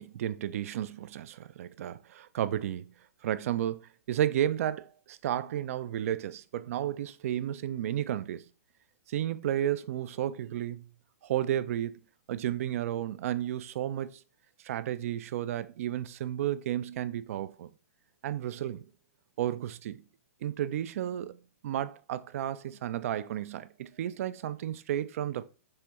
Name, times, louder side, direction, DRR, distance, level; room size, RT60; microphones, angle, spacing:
voice 1, 0.0-2.9 3.2-8.5 9.1-10.8 11.2-11.9 12.3-14.2 14.6-17.7 18.2-18.9 19.4-20.0 20.4-25.4, right 11 dB, 65° right, 0.3 m, -32 dB
4.4 x 2.6 x 3.4 m
hypercardioid pair, 140°, 8 cm